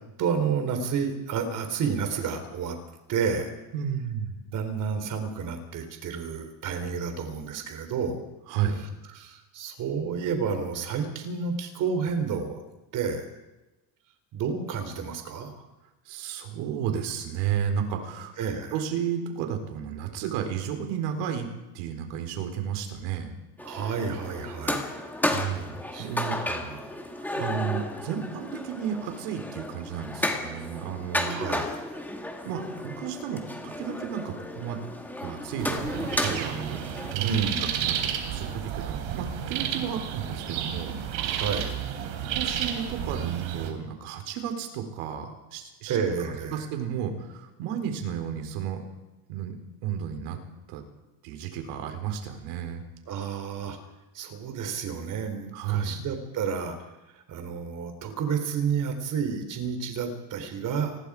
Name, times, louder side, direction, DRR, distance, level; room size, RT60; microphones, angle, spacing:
voice 1, 0.2-2.8 3.1-3.5 4.5-8.2 9.1-12.6 12.9-13.3 14.3-15.7 18.4-18.7 23.6-24.9 25.9-26.1 26.4-26.9 31.2-31.8 37.2-37.9 41.2-41.8 45.9-46.6 53.1-53.8 54.1-56.8 57.1-61.0, right 6 dB, 40° right, 7 dB, 3.7 m, -30 dB
voice 2, 3.7-4.4 8.5-8.8 16.1-18.3 18.7-21.5 21.7-23.3 25.3-26.4 27.2-31.4 32.4-34.8 35.2-36.8 37.1-37.4 37.8-41.0 42.3-46.0 46.5-48.8 49.3-49.6 49.8-50.4 50.7-50.8 51.2-52.8 55.5-56.1, right 8 dB, 85° right, 5 dB, 4.3 m, -32 dB
sound 1, 23.6-37.1, left 1 dB, 5° left, 1.9 m, -33 dB
sound 2, 35.6-43.7, right 9 dB, 65° right, 3.9 m, -31 dB
28.5 x 20.5 x 5.0 m, 1.1 s
cardioid pair, 170°, 46 cm